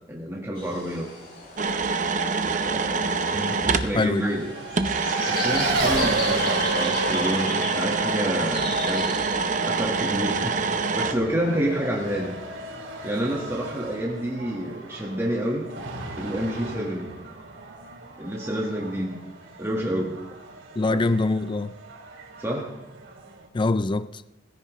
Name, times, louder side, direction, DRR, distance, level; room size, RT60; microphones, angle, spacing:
voice 1, 0.1-1.1 2.6-3.1 3.6-4.6 5.3-9.2 9.7-10.6 10.9-12.4 13.0-15.6 16.2-17.1 18.2-19.2 19.6-20.2 20.9-21.1 22.4-22.7, equal, 15° right, 1.5 m, -28 dB
sound 1, 0.6-9.8, left 2 dB, 50° left, 6.1 m, -37 dB
sound 2, 1.6-3.9 4.8-11.1, right 4 dB, 40° right, 0.8 m, -25 dB
voice 2, 3.9-4.3 20.8-21.7 23.5-24.2, left 2 dB, 25° left, 0.4 m, -24 dB
Race car auto racing, 4.3-23.5, right 2 dB, 85° right, 2.5 m, -33 dB
17.5 x 15.5 x 3.1 m
head